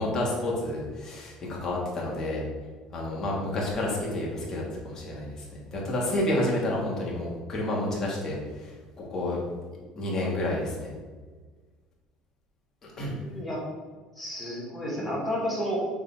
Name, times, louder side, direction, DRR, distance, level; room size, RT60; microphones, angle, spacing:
voice 1, 0.0-2.4 2.9-8.7 9.1-9.4 9.9-10.9 12.8-13.1, left 1 dB, 25° left, -3 dB, 1.4 m, -30 dB
voice 2, 13.0-13.6 14.1-15.8, equal, 5° left, -5 dB, 1.3 m, -31 dB
6.6 x 3.5 x 4.4 m, 1.4 s
cardioid pair, 180°, 2 cm